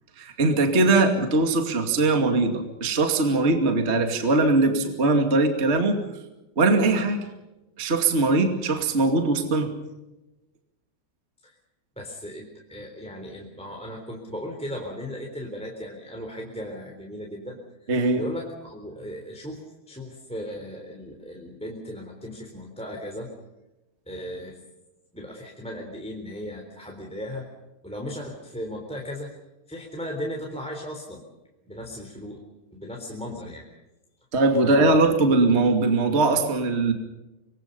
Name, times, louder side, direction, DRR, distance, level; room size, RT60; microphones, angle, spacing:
voice 1, 0.2-6.0 6.5-7.3 7.8-9.7 17.9-18.2 34.3-36.9, right 2 dB, 25° right, 5 dB, 1.5 m, -21 dB
voice 2, 11.9-23.3 24.1-24.6 25.1-27.5 27.8-29.3 29.7-31.2 31.6-32.4 32.7-33.7 34.6-35.0, equal, ahead, 0 dB, 3.0 m, -37 dB
26.5 x 22.5 x 5.5 m, 1.0 s
omnidirectional pair, 5.0 m